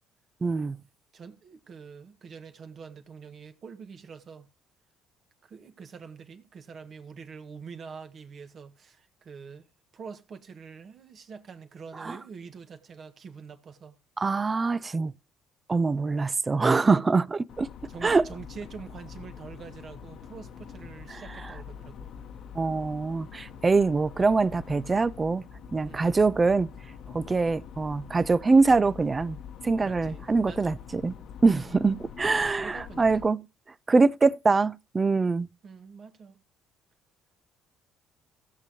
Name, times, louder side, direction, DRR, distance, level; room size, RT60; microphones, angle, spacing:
voice 1, 0.4-0.8 12.0-12.2 14.2-15.1 15.7-17.7 18.0-18.3 21.1-21.2 22.5-25.4 25.7-26.7 27.1-29.4 29.6-31.2 31.4-33.4 33.9-35.5, right 4 dB, 30° right, 0.5 m, -24 dB
voice 2, 1.1-4.5 5.4-9.7 9.9-14.0 17.9-22.1 25.8-26.1 29.8-30.8 32.3-33.2 35.6-36.4, right 5 dB, 50° right, 1.6 m, -45 dB
sound 1, 17.5-33.2, left 7 dB, 65° left, 1.1 m, -45 dB
17.0 x 6.8 x 2.9 m
hypercardioid pair, 65°, 0 cm